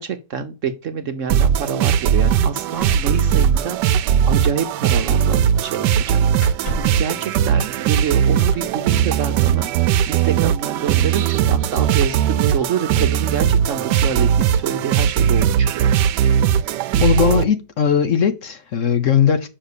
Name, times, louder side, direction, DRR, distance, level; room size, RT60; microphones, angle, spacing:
voice 1, 0.0-4.0 4.3-5.9 6.5-15.9, right 7 dB, 60° right, 1.0 m, -27 dB
sound 1, 1.3-17.4, right 9 dB, 85° right, 1.2 m, -18 dB
sound 2, 2.7-4.1 4.3-4.5 6.3-7.1 8.3-8.7 9.9-10.0 10.4-10.8, right 2 dB, 75° left, 3.8 m, -32 dB
voice 2, 17.0-19.5, left 7 dB, 55° left, 1.1 m, -18 dB
6.7 x 5.7 x 6.7 m
omnidirectional pair, 1.8 m